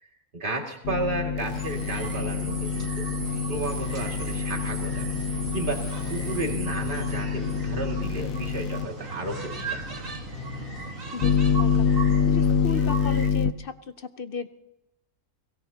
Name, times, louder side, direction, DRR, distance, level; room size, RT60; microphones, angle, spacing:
voice 1, 0.3-3.1 3.5-9.8, right 2 dB, 35° right, 1 dB, 2.5 m, -33 dB
sound 1, 0.8-8.9 11.2-13.5, left 7 dB, 70° left, 1.1 m, -26 dB
sound 2, 1.5-13.3, right 3 dB, 65° right, 2.4 m, -37 dB
sound 3, 3.3-12.0, left 5 dB, 85° left, 1.4 m, -42 dB
voice 2, 11.1-11.9 12.3-14.5, left 6 dB, 50° left, 11 dB, 0.8 m, -36 dB
23.0 x 18.0 x 2.9 m, 0.86 s
omnidirectional pair, 1.5 m